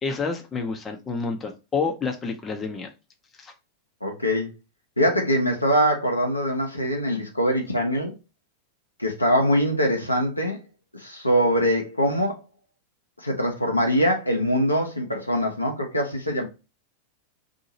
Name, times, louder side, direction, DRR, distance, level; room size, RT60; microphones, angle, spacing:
voice 1, 0.0-2.9 3.4-3.5, left 4 dB, 20° left, 0.7 m, -29 dB
voice 2, 4.0-4.5 5.0-8.1 9.0-10.6 10.9-12.4 13.2-16.4, equal, 85° left, 1.0 m, -23 dB
2.8 x 2.7 x 4.1 m
figure-of-eight pair, 90°, 0 cm